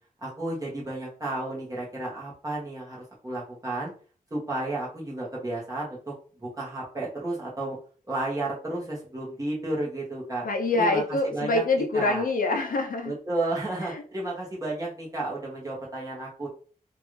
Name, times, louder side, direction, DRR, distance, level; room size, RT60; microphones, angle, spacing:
voice 1, 0.2-3.9 4.3-7.8 8.1-10.4 10.7-11.6 11.9-12.2 13.0-16.5, right 2 dB, 25° right, -5 dB, 1.3 m, -32 dB
voice 2, 10.4-13.1, left 2 dB, 70° left, 4 dB, 0.6 m, -25 dB
3.0 x 2.6 x 3.2 m, 0.41 s
wide cardioid pair, 115°, 15 cm